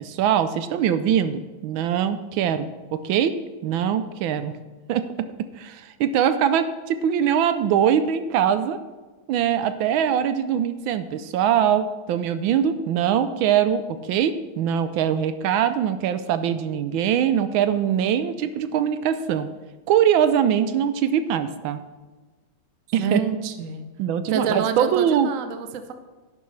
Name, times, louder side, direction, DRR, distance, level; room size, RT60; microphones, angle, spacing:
voice 1, 0.0-4.6 4.9-5.3 5.6-8.8 9.3-19.5 19.9-21.8 22.9-23.2 24.0-25.3, right 9 dB, 80° right, 11 dB, 1.4 m, -22 dB
voice 2, 23.0-23.8 24.3-25.9, right 6 dB, 55° right, 8 dB, 0.9 m, -27 dB
11.5 x 10.5 x 3.2 m, 1.3 s
omnidirectional pair, 2.2 m